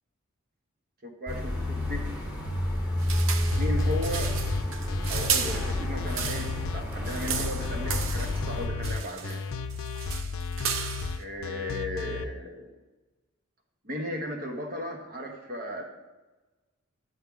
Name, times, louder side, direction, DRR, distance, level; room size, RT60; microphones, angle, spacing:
voice 1, 1.0-2.1 3.6-4.4 5.1-9.4 11.2-12.7 13.8-15.8, left 1 dB, 45° right, 2 dB, 1.1 m, -35 dB
sound 1, 1.3-8.7, left 1 dB, 10° right, 1.5 m, -30 dB
sound 2, 3.0-6.6 6.9-8.5 8.8-9.4 9.7-11.2, right 7 dB, 70° right, 0.6 m, -34 dB
sound 3, 3.5-12.2, left 4 dB, 75° left, 0.5 m, -33 dB
10.5 x 6.4 x 3.6 m, 1.2 s
head